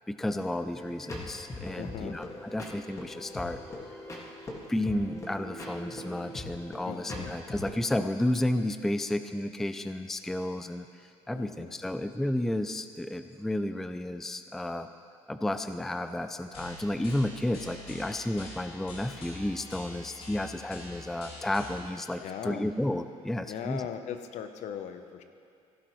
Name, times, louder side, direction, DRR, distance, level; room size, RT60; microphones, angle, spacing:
voice 1, 0.0-3.6 4.7-14.9 15.3-23.9, left 1 dB, 5° left, 9 dB, 0.3 m, -32 dB
sound 1, 0.7-7.8, left 1 dB, 25° left, 1.8 m, -41 dB
voice 2, 1.8-2.2 6.9-7.3 11.3-11.7 22.2-22.6 23.5-25.2, left 8 dB, 65° left, 8 dB, 0.8 m, -38 dB
sound 2, 16.5-21.9, left 2 dB, 50° left, 2.6 m, -45 dB
16.5 x 11.5 x 3.1 m, 2.4 s
cardioid pair, 110°, 13 cm